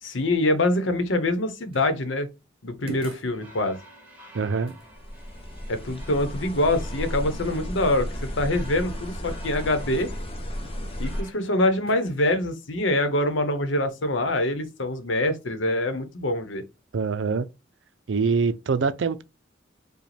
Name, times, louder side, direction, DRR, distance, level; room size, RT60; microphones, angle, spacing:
voice 1, 0.0-2.3 2.6-3.8 5.7-8.1 8.4-10.1 11.0-16.6, left 1 dB, 80° left, 0.9 m, -25 dB
sound 1, 1.7-2.0 2.9-3.4 4.7-4.9 10.0-10.2 11.9-12.2, right 4 dB, 30° right, 1.2 m, -40 dB
sound 2, 3.3-11.3, right 1 dB, 10° right, 1.6 m, -49 dB
voice 2, 4.3-4.7 16.9-17.5 18.1-19.2, right 5 dB, 70° right, 0.5 m, -24 dB
sound 3, 4.8-11.2, equal, 30° left, 0.7 m, -33 dB
5.0 x 2.3 x 3.3 m
head